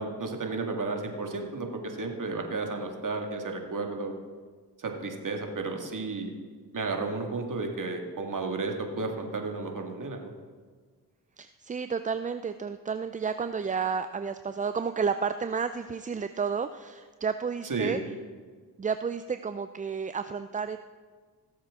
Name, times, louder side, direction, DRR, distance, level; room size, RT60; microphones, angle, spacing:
voice 1, 0.0-4.1 4.8-6.3 6.7-10.3 17.7-18.0, right 3 dB, 50° right, 3 dB, 2.0 m, -33 dB
voice 2, 11.4-18.0 18.8-20.8, right 6 dB, 20° right, 10 dB, 0.3 m, -31 dB
18.0 x 7.3 x 3.7 m, 1.5 s
cardioid pair, 50°, 42 cm